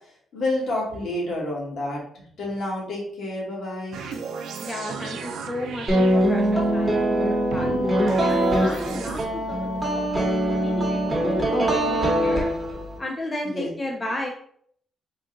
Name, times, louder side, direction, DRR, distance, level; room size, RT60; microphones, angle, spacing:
voice 1, 0.3-2.0 2.4-4.0 13.4-13.7, left 1 dB, 60° left, -4 dB, 1.6 m, -29 dB
sound 1, 3.9-6.8 7.5-9.3, right 5 dB, 80° right, 0.5 m, -35 dB
voice 2, 4.6-12.5 13.0-14.3, left 1 dB, 20° left, 1 dB, 0.5 m, -34 dB
sound 2, 5.9-13.0, right 1 dB, 10° right, 1.1 m, -22 dB
3.8 x 2.4 x 3.8 m, 0.63 s
cardioid pair, 135°, 0 cm